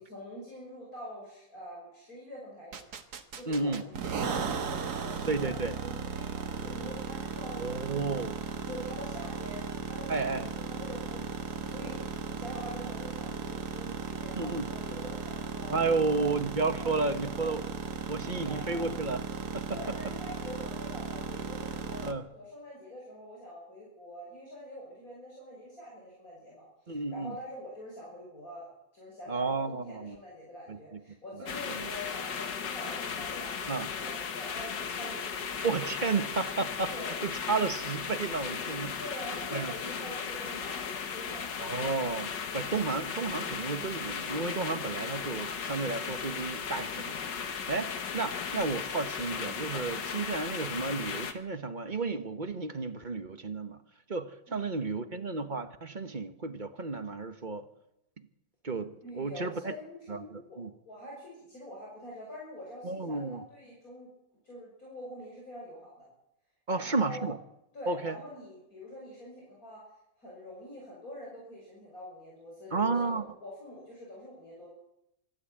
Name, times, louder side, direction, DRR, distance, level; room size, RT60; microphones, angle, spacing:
voice 1, 0.0-2.9 3.3-16.3 16.8-17.5 18.2-18.9 19.7-28.7 28.9-35.6 36.9-37.2 39.0-41.6 54.5-55.1 59.0-60.6 60.8-64.1 64.4-66.1 66.7-67.3 67.7-69.8 70.2-74.7, left 1 dB, 50° left, -4 dB, 6.3 m, -45 dB
sound 1, 2.7-22.1, right 5 dB, 60° right, 1.9 m, -36 dB
voice 2, 3.5-3.8 5.3-5.7 7.6-8.4 10.1-10.5 14.4-14.7 15.7-17.6 18.1-19.2 19.5-19.8 22.0-22.2 26.9-27.4 29.3-30.2 30.7-30.8 31.4-31.9 33.7-33.9 35.6-39.0 39.5-39.7 41.6-53.8 54.1-57.6 58.6-59.7 60.1-60.7 62.8-63.5 66.7-67.4 67.9-68.2 72.7-73.2, right 3 dB, 30° right, 10 dB, 1.1 m, -32 dB
sound 2, 31.5-51.3, left 6 dB, 75° left, 2.1 m, -36 dB
25.5 x 12.5 x 8.7 m, 0.85 s
omnidirectional pair, 1.9 m